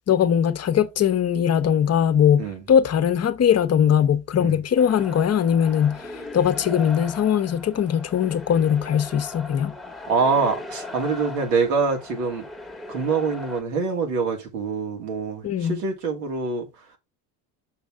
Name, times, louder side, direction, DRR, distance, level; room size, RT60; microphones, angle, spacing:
voice 1, 0.1-9.8 15.4-15.8, left 9 dB, 35° left, 0.9 m, -20 dB
sound 1, 4.8-13.6, left 3 dB, ahead, 1.2 m, -39 dB
voice 2, 10.1-12.4 12.9-16.7, right 4 dB, 85° right, 2.8 m, -25 dB
6.6 x 6.1 x 3.7 m
supercardioid pair, 95°, 47 cm